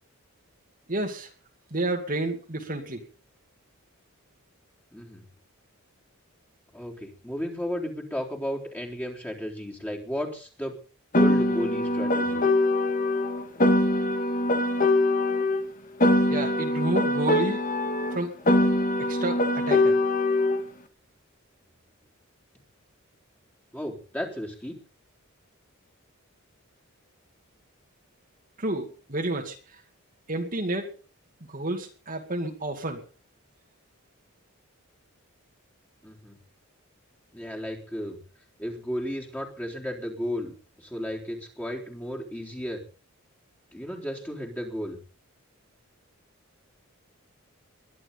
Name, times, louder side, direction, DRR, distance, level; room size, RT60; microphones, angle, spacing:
voice 1, 0.9-1.3 1.7-3.0 16.3-17.6 18.1-18.3 19.1-20.0 28.6-29.6 30.3-30.9 31.5-33.0, right 2 dB, 40° right, 3 dB, 2.4 m, -30 dB
voice 2, 4.9-5.2 6.7-10.8 11.1-12.4 23.7-24.8 36.0-36.4 37.3-38.2 38.6-42.8 43.7-45.0, equal, 10° left, -1 dB, 3.7 m, -34 dB
Piano, 11.1-15.6 16.0-20.6, left 1 dB, 40° left, 2.2 m, -23 dB
21.5 x 12.0 x 4.0 m, 0.37 s
head